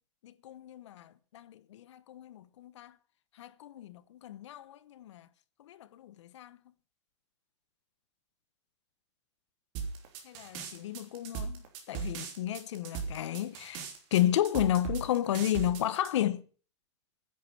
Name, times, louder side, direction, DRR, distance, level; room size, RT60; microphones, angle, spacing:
voice 1, 0.2-2.9 3.4-5.3 5.6-6.6 10.2-13.8 14.1-16.4, left 12 dB, 80° left, 1.1 m, -32 dB
sound 1, 9.7-16.1, right 6 dB, 40° right, 3.2 m, -38 dB
10.5 x 8.4 x 8.6 m
supercardioid pair, 165°, 15 cm